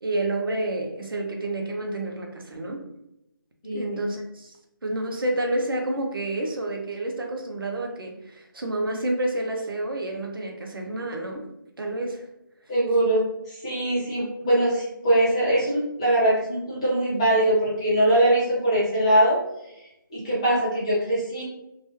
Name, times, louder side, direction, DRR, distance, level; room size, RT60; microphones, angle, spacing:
voice 1, 0.0-2.9 3.7-4.6 4.8-11.5 11.8-12.3 14.4-14.5 20.5-20.6, right 1 dB, 75° right, 1 dB, 0.8 m, -29 dB
voice 2, 12.7-19.4 19.8-21.4, right 1 dB, 15° left, -8 dB, 0.7 m, -22 dB
2.9 x 2.3 x 3.0 m, 0.86 s
figure-of-eight pair, 170°, 12 cm